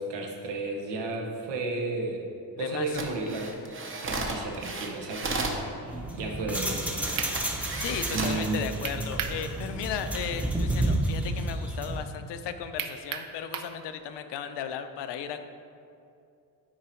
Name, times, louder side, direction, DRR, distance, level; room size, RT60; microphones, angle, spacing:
voice 1, 0.0-2.2 2.6-3.5 4.0-5.4 5.8-6.9 7.2-7.3 8.1-8.7, right 2 dB, 85° right, 1 dB, 1.3 m, -33 dB
voice 2, 2.6-3.0 7.8-15.5, left 8 dB, 80° left, 9 dB, 0.7 m, -35 dB
sound 1, 2.8-5.6 6.5-6.6 7.0-8.4 9.0-9.2, right 3 dB, 30° right, 0.9 m, -34 dB
sound 2, 5.9-12.0, right 1 dB, 5° right, 0.7 m, -31 dB
sound 3, 7.2-7.4 8.8-9.4 9.8-9.9 12.8-13.8, right 8 dB, 55° right, 0.6 m, -34 dB
9.0 x 4.8 x 4.4 m, 2.6 s
cardioid pair, 145°, 41 cm